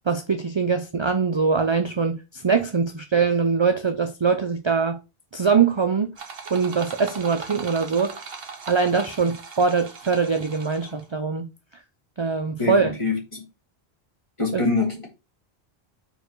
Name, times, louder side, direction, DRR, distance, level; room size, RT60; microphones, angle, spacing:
voice 1, 0.1-5.0 5.3-6.1 6.5-8.2 8.7-11.5 12.2-12.9 14.5-14.6, right 5 dB, 35° right, 0.5 m, -22 dB
sound 1, 6.2-11.1, right 5 dB, 70° right, 1.2 m, -39 dB
voice 2, 12.6-13.4 14.4-15.1, left 3 dB, 30° left, 2.2 m, -25 dB
4.9 x 4.5 x 4.5 m
omnidirectional pair, 1.0 m